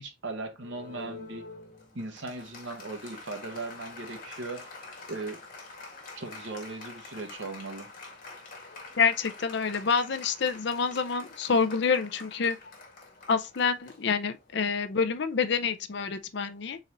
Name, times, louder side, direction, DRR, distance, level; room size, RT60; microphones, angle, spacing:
voice 1, 0.0-1.4 1.9-4.7 5.1-5.4 6.2-7.9, right 3 dB, 70° right, 1.1 m, -38 dB
Applause, 0.6-14.6, left 3 dB, 45° left, 1.5 m, -46 dB
voice 2, 9.0-12.6 13.3-16.8, left 5 dB, 60° left, 0.5 m, -27 dB
4.0 x 3.9 x 3.0 m
head